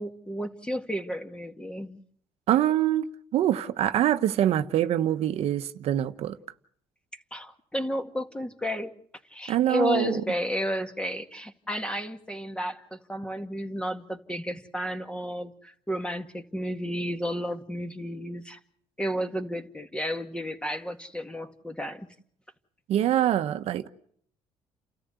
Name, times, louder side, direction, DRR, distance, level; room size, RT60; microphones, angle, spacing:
voice 1, 0.0-2.0 7.3-8.9 9.3-18.6 19.0-22.1, equal, 10° left, 2.1 m, -32 dB
voice 2, 2.5-6.4 9.5-10.2 22.9-23.9, right 12 dB, 70° right, 1.1 m, -24 dB
30.0 x 14.0 x 8.2 m
cardioid pair, 100°, 11 cm